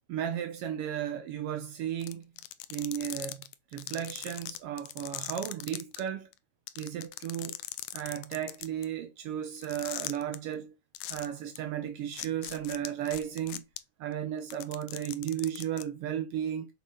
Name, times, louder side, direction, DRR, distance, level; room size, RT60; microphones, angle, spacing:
voice 1, 0.1-2.2 2.7-3.4 3.7-6.3 6.8-7.6 7.9-10.7 11.1-13.6 14.0-16.7, right 10 dB, 85° right, 1.3 m, -34 dB
sound 1, 2.0-6.0 6.3-6.4 6.7-8.8 9.6-10.4 10.9-11.3 11.6-11.7 12.1-13.8 14.4-15.8, left 16 dB, 80° left, 1.9 m, -39 dB
6.9 x 4.5 x 5.1 m
omnidirectional pair, 3.7 m